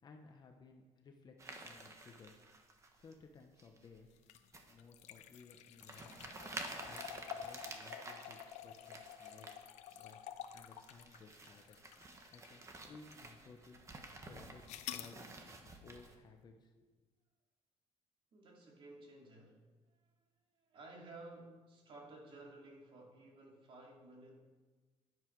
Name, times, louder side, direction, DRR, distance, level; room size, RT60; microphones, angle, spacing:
voice 1, 0.0-2.4 2.7-4.2 4.7-9.5 9.9-11.8 12.3-16.9, left 4 dB, 40° left, 3 dB, 1.1 m, -59 dB
sound 1, 1.4-3.1 3.6-4.0 4.5-4.8 5.3-5.4 5.8-9.6 9.9-10.1 10.5-16.2, right 2 dB, 25° right, 1.4 m, -51 dB
sound 2, 4.2-12.6 13.1-13.2 14.7-15.1, left 10 dB, 85° left, 0.8 m, -49 dB
voice 2, 18.3-20.1 20.5-24.4, right 2 dB, 50° right, 0 dB, 2.8 m, -55 dB
11.0 x 11.0 x 4.7 m, 1.3 s
cardioid pair, 135°, 11 cm